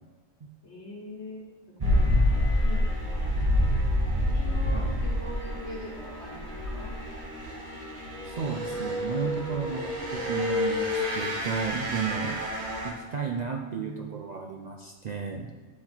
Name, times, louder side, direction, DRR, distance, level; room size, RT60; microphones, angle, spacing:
voice 1, 0.6-2.1 2.6-3.3 4.2-6.9, left 1 dB, 70° left, -3 dB, 1.8 m, -42 dB
sound 1, 1.8-12.9, left 1 dB, 35° right, 1.2 m, -28 dB
sound 2, 8.1-11.8, left 2 dB, 55° left, 0.6 m, -32 dB
voice 2, 8.3-12.4 12.8-15.5, right 6 dB, 55° right, 2 dB, 0.5 m, -33 dB
8.6 x 4.0 x 4.4 m, 1.3 s
omnidirectional pair, 1.2 m